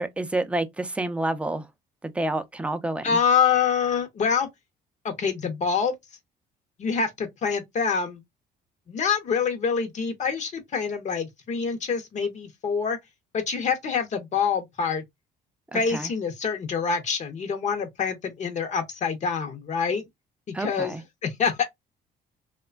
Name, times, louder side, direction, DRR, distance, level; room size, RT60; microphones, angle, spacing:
voice 1, 0.0-1.7 2.0-3.2 15.7-16.1 20.5-21.0, right 2 dB, 5° right, 0.4 m, -29 dB
voice 2, 3.0-4.5 5.0-5.9 6.8-8.2 8.9-13.0 13.3-15.0 15.7-20.0 20.6-20.9 21.2-21.7, left 6 dB, 45° left, 0.7 m, -26 dB
3.0 x 2.2 x 2.3 m
cardioid pair, 110°, 17 cm